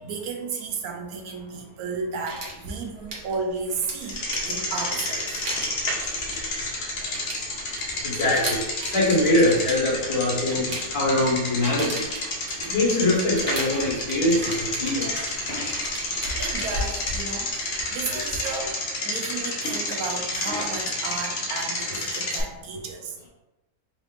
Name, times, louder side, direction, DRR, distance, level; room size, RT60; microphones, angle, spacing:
voice 1, 0.0-5.5 16.4-18.8 19.0-23.3, right 4 dB, 80° right, 2 dB, 1.1 m, -33 dB
sound 1, 2.3-18.7, right 1 dB, 45° right, 1.0 m, -36 dB
Bicycle, 4.0-22.4, left 2 dB, 50° left, 0.8 m, -30 dB
voice 2, 7.9-15.3, left 1 dB, 75° left, -7 dB, 2.1 m, -24 dB
4.2 x 3.5 x 2.4 m, 0.99 s
omnidirectional pair, 1.6 m